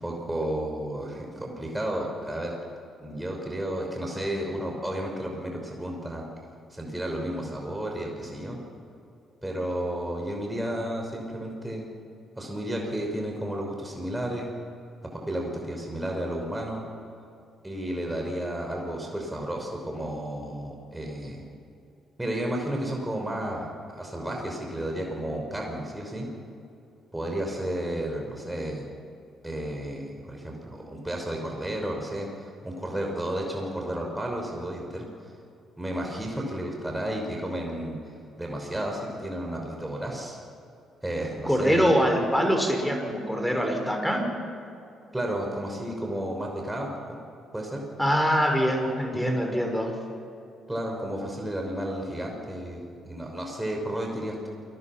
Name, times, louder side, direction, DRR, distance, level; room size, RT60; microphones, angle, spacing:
voice 1, 0.0-2.5 3.0-6.2 6.7-8.6 9.4-11.9 12.4-14.5 15.0-16.8 17.6-21.4 22.2-26.3 27.1-28.8 29.4-35.1 35.8-38.0 38.4-40.4 41.0-41.9 45.1-47.2 47.5-47.8 49.1-49.4 50.7-54.5, right 1 dB, 10° right, 0 dB, 5.9 m, -32 dB
voice 2, 41.5-44.3 48.0-49.9, equal, 5° left, 3 dB, 5.6 m, -24 dB
28.0 x 20.5 x 6.1 m, 2.6 s
figure-of-eight pair, 45°, 0 cm